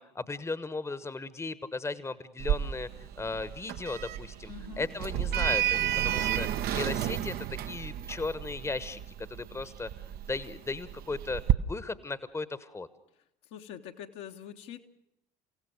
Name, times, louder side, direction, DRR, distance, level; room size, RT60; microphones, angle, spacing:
voice 1, 0.0-4.5 4.8-7.3 7.7-9.9 10.2-12.9, left 3 dB, 15° left, 16 dB, 1.1 m, -36 dB
Sliding door, 2.4-11.5, right 11 dB, 50° right, 0.8 m, -32 dB
Bowed string instrument, 4.4-9.9, right 1 dB, 85° left, 6.0 m, -57 dB
voice 2, 4.5-4.9 13.5-14.8, left 10 dB, 55° left, 4 dB, 1.3 m, -44 dB
29.0 x 16.5 x 6.5 m, 0.83 s
figure-of-eight pair, 60°, 21 cm